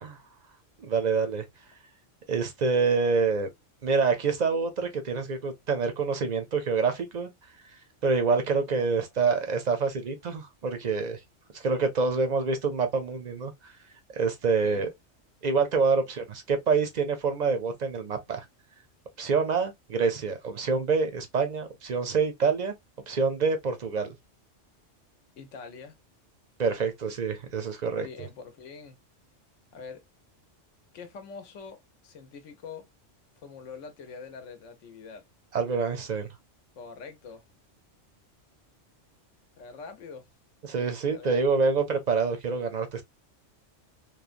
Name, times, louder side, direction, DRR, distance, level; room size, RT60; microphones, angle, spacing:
voice 1, 0.8-1.4 2.3-3.5 3.8-7.3 8.0-11.2 11.5-13.7 14.1-14.9 15.4-18.5 19.2-22.7 23.1-24.1 26.6-28.1 35.5-36.3 40.6-43.0, right 4 dB, 55° right, 0.5 m, -26 dB
voice 2, 14.4-14.9 25.4-26.0 28.0-29.0 29.7-30.0 30.9-32.9 33.4-35.2 36.8-37.4 39.6-40.2 40.8-41.4, left 5 dB, 85° left, 1.1 m, -44 dB
3.0 x 2.1 x 2.4 m
omnidirectional pair, 1.2 m